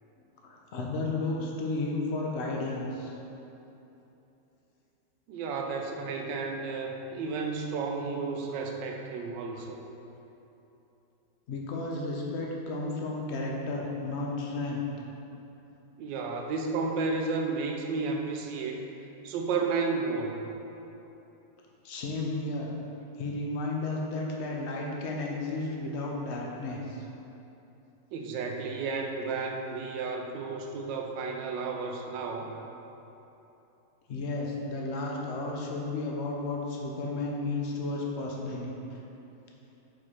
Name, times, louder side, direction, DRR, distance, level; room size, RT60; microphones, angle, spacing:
voice 1, 0.4-3.1 11.5-14.8 21.8-22.7 23.2-27.0 34.1-39.0, left 2 dB, 65° left, -2 dB, 0.7 m, -33 dB
voice 2, 5.3-9.8 16.0-18.8 19.2-20.4 28.1-32.5, right 4 dB, 80° right, 2 dB, 1.3 m, -32 dB
4.8 x 4.7 x 4.2 m, 3.0 s
omnidirectional pair, 1.9 m